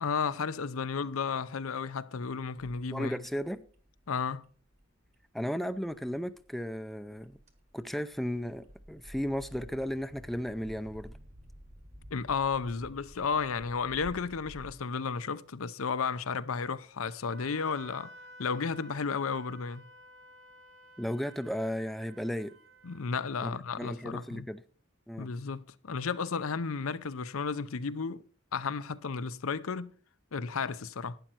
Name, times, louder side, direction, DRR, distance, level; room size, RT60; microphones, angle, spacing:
voice 1, 0.0-3.2 4.1-4.4 12.1-18.1 18.4-19.8 22.8-24.5 25.2-28.2 28.5-29.9 30.3-31.2, left 5 dB, 85° left, 0.6 m, -33 dB
voice 2, 2.9-3.6 5.3-7.4 7.7-11.1 21.0-22.5 23.4-24.6 25.1-25.3, equal, ahead, 0.4 m, -35 dB
sound 1, 3.2-14.7, equal, 35° right, 1.6 m, -52 dB
Wind instrument woodwind instrument, 17.3-23.1, right 1 dB, 55° right, 1.1 m, -53 dB
11.5 x 9.1 x 4.4 m
head